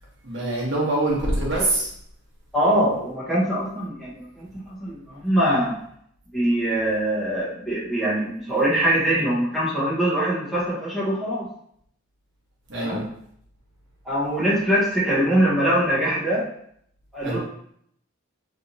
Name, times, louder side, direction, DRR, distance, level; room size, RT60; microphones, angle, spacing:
voice 1, 0.2-1.9 12.7-13.0 17.2-17.4, right 1 dB, 60° right, -4 dB, 1.0 m, -24 dB
voice 2, 2.5-5.7 6.3-11.5 12.7-13.0 14.0-16.4 17.1-17.4, right 1 dB, ahead, -10 dB, 1.1 m, -23 dB
3.3 x 3.0 x 2.7 m, 0.67 s
head